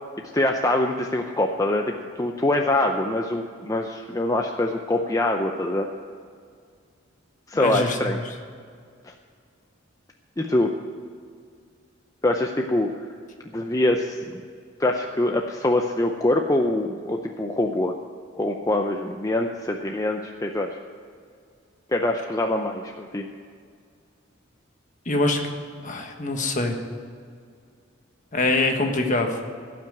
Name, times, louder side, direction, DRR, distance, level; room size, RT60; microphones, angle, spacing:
voice 1, 0.3-5.9 7.5-8.2 9.0-9.1 10.4-10.7 12.2-13.1 13.5-14.4 14.8-17.9 18.4-20.7 21.9-23.3, left 1 dB, 15° left, 3 dB, 0.6 m, -24 dB
voice 2, 7.6-8.1 25.0-25.4 25.8-26.8 28.3-29.5, left 2 dB, 40° left, 3 dB, 1.5 m, -24 dB
16.5 x 6.0 x 9.2 m, 2.2 s
head